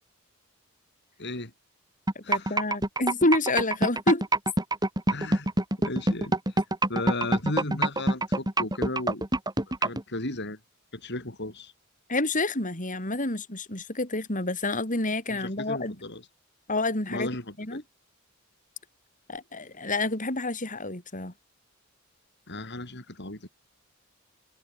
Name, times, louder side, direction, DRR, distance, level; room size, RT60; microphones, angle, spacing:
voice 1, 1.2-1.5 2.2-2.6 5.1-5.5 5.8-6.6 6.9-9.2 9.7-10.6 10.9-11.7 15.3-16.3 17.1-17.8 22.5-23.5, left 2 dB, 55° left, 6.5 m, -35 dB
sound 1, 2.1-10.0, right 2 dB, 20° right, 4.1 m, -24 dB
voice 2, 2.2-4.2 12.1-16.0 16.7-17.3 17.6-17.8 19.3-21.3, left 2 dB, 40° left, 6.9 m, -28 dB
head